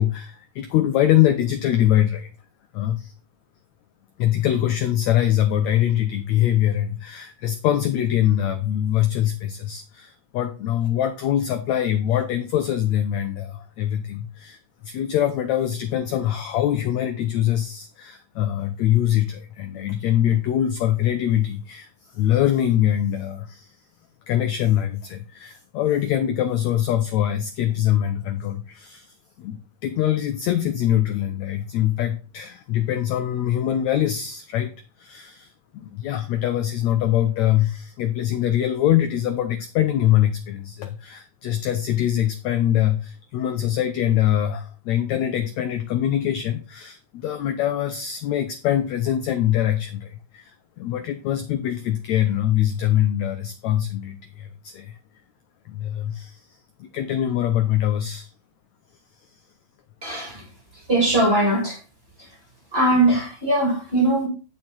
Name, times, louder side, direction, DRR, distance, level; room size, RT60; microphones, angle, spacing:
voice 1, 0.0-2.3 2.7-3.1 4.2-21.9 22.1-23.7 24.3-29.1 29.4-34.7 35.0-50.5 50.8-55.0 55.7-56.4 56.8-58.3, left 11 dB, 75° left, 1.7 m, -23 dB
voice 2, 60.0-60.5 60.7-61.8 62.2-62.3 62.7-64.3, right 1 dB, 20° right, 2.4 m, -21 dB
8.6 x 6.5 x 4.2 m
omnidirectional pair, 3.9 m